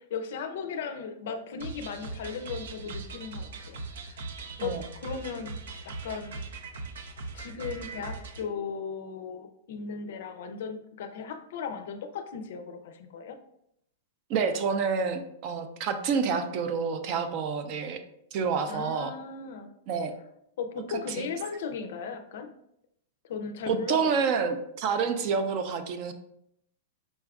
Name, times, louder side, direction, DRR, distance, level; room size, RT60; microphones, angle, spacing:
voice 1, 0.0-4.3 4.6-5.6 5.8-6.4 7.3-13.4 18.7-19.7 20.6-22.5 23.3-24.1, left 6 dB, 60° left, 8 dB, 0.4 m, -37 dB
sound 1, 1.6-8.4, right 3 dB, 85° right, 0.5 m, -40 dB
voice 2, 14.3-18.0 18.3-19.1 19.9-20.1 21.1-21.2 23.7-26.1, right 5 dB, 35° right, 8 dB, 0.4 m, -28 dB
5.1 x 2.3 x 3.4 m, 0.75 s
supercardioid pair, 170°, 0 cm